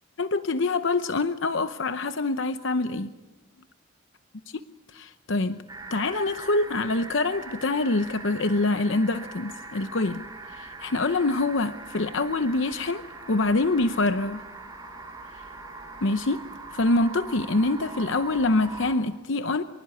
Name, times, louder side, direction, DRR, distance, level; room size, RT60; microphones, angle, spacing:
voice 1, 0.2-3.1 4.5-4.6 4.9-5.6 5.9-14.4 16.0-16.4 16.7-19.6, left 2 dB, 65° left, 11 dB, 0.8 m, -25 dB
sound 1, 5.7-19.0, right 3 dB, 20° right, 3.6 m, -42 dB
25.0 x 23.5 x 9.7 m, 1.1 s
head